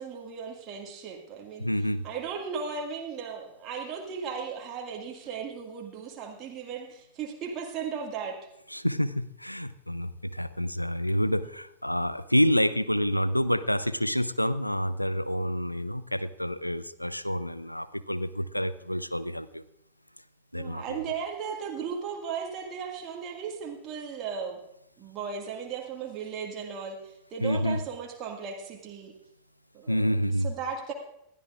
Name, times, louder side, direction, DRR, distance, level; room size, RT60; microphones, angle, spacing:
voice 1, 0.0-1.7 2.0-8.4 20.5-24.6 25.0-29.1 29.7-30.1 30.4-30.9, right 6 dB, 35° right, 1.9 m, -36 dB
voice 2, 1.6-2.0 8.7-19.6 20.5-21.0 27.4-27.8 29.9-30.5, equal, 90° left, 0.4 m, -28 dB
20.5 x 12.5 x 2.5 m
figure-of-eight pair, 90°, 0 cm